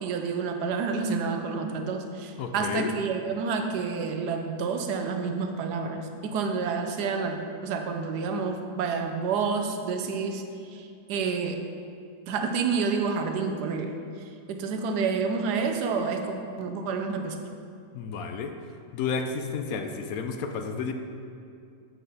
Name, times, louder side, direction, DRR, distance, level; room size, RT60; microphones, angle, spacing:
voice 1, 0.0-10.4 10.7-11.6 12.3-14.0 14.5-17.4, right 5 dB, 85° right, 5 dB, 1.2 m, -29 dB
voice 2, 2.4-2.9 17.9-18.5 18.9-20.9, left 5 dB, 70° left, 6 dB, 1.0 m, -31 dB
7.8 x 5.8 x 4.1 m, 2.5 s
omnidirectional pair, 1.7 m